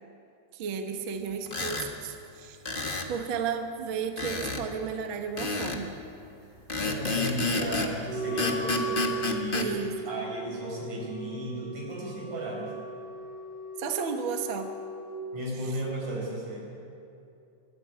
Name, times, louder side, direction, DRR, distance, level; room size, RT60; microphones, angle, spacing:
voice 1, 0.5-2.6 3.1-5.9 9.5-10.2 13.8-14.7, right 6 dB, 50° right, 5 dB, 1.7 m, -33 dB
sound 1, 1.5-1.9 2.6-3.1 4.2-4.6 5.4-5.8 6.7-7.9 8.4-9.7, left 3 dB, 30° left, 0.9 m, -30 dB
voice 2, 6.7-9.8 10.1-12.7 15.3-16.7, right 1 dB, 75° right, -2 dB, 6.7 m, -35 dB
Wind instrument woodwind instrument, 8.0-15.1, right 2 dB, 60° left, 8.9 m, -37 dB
25.0 x 14.5 x 8.4 m, 2.7 s
omnidirectional pair, 3.5 m